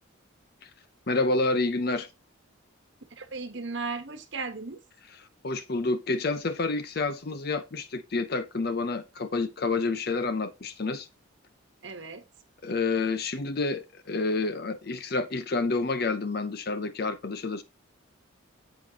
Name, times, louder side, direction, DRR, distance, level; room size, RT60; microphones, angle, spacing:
voice 1, 1.1-2.1 5.4-11.1 12.6-17.6, left 3 dB, 50° left, 0.6 m, -29 dB
voice 2, 3.1-4.8 11.8-12.3, right 4 dB, 55° right, 1.2 m, -36 dB
8.7 x 7.8 x 2.9 m
head